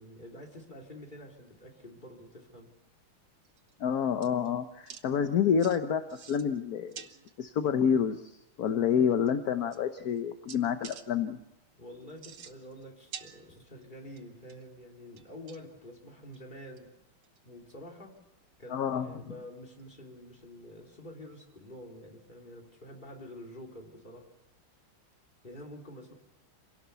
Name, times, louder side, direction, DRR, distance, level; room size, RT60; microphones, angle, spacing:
voice 1, 0.0-2.7 11.8-16.9 17.4-18.2 18.6-24.3 25.4-26.1, equal, 20° left, 0 dB, 3.4 m, -48 dB
sound 1, 3.4-3.7 4.2-4.5 4.8-5.0 5.6-5.8 6.1-6.6 6.9-7.3 8.7-8.8 9.3-9.4 9.7-10.2 10.5-11.0 12.1-12.8 13.1-13.8 14.2-14.7 15.2-15.8 16.3-16.4 16.8-16.9 17.2-17.4 17.7-17.8 19.8-19.9, right 7 dB, 60° right, 1.7 m, -47 dB
voice 2, 3.8-6.0 6.3-7.0 7.4-11.4 18.7-19.3, left 7 dB, 55° left, 8 dB, 1.2 m, -28 dB
27.0 x 17.5 x 6.9 m, 0.89 s
omnidirectional pair, 2.3 m